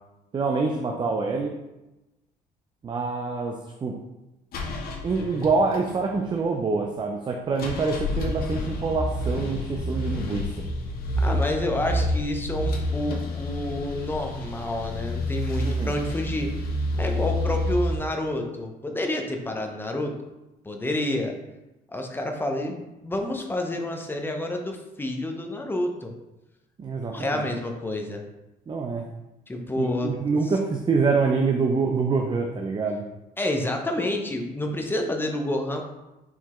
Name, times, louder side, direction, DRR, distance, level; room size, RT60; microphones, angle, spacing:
voice 1, 0.3-1.5 2.8-3.5 3.8-3.9 5.0-10.5 15.6-15.9 26.8-27.5 28.7-29.0 29.8-33.1, right 4 dB, 25° right, 2 dB, 0.4 m, -25 dB
sound 1, 4.5-6.4 7.6-18.0, left 1 dB, 60° left, 0.9 m, -29 dB
voice 2, 11.2-16.5 17.0-20.1 20.6-21.3 21.9-26.1 27.1-28.2 29.5-30.1 33.4-35.8, left 1 dB, 10° left, 3 dB, 0.6 m, -29 dB
4.7 x 3.3 x 3.0 m, 0.99 s
cardioid pair, 110°, 17 cm